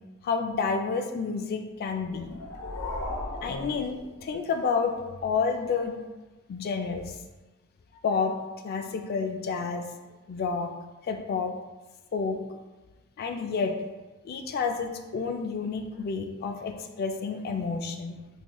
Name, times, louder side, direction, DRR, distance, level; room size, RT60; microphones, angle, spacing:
voice 1, 0.2-2.4 3.4-5.0 5.2-6.0 6.5-7.1 8.0-8.3 8.6-9.8 10.3-10.7 11.0-11.5 12.1-12.4 13.2-13.7 14.2-18.1, left 5 dB, 45° left, 5 dB, 0.3 m, -29 dB
sound 1, 2.0-4.6, left 2 dB, 75° left, 0.8 m, -37 dB
3.7 x 3.0 x 2.2 m, 1.1 s
head